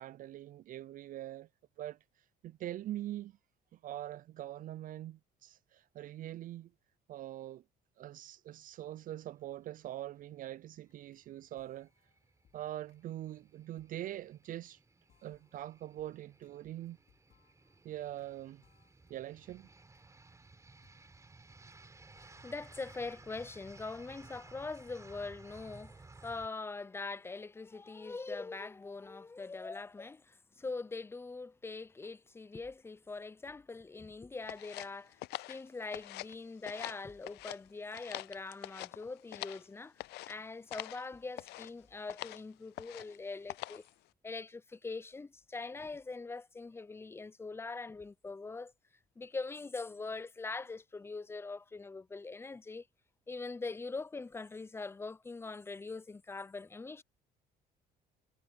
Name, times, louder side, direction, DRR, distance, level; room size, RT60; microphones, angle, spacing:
voice 1, 0.0-1.5 1.8-2.0 2.4-3.4 3.7-6.7 7.1-7.6 8.0-11.9 12.5-14.8 15.2-17.0 17.8-18.6 19.1-19.7, right 13 dB, 55° right, 0.4 m, -43 dB
sound 1, 10.7-26.5, right 3 dB, 20° right, 3.8 m, -58 dB
sound 2, 10.9-11.3 11.6-14.8 15.1-18.3 18.6-21.9 22.1-23.3, left 10 dB, 60° left, 5.1 m, -74 dB
voice 2, 22.2-25.9 26.2-35.2 35.5-39.9 40.3-43.8 44.2-48.7 49.2-52.8 53.3-57.0, left 3 dB, 15° left, 0.5 m, -42 dB
sound 3, 34.5-36.4 36.6-37.6 37.9-39.7 40.0-40.3 40.7-41.0 41.3-41.7 42.1-42.4 42.7-43.2 43.5-43.9, left 19 dB, 80° left, 0.4 m, -44 dB
cardioid pair, 110°, 17 cm